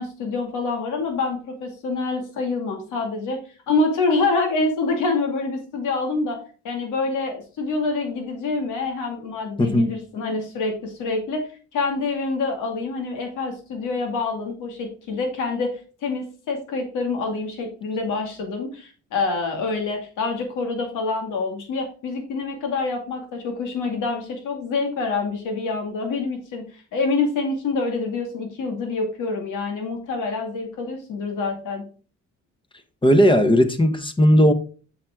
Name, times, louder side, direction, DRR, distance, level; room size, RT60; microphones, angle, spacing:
voice 1, 0.0-3.4 3.7-31.8, left 3 dB, 85° left, 2.4 m, -26 dB
voice 2, 9.6-10.0 33.0-34.5, equal, 15° left, 1.1 m, -16 dB
7.4 x 5.9 x 3.7 m
cardioid pair, 90°, 30 cm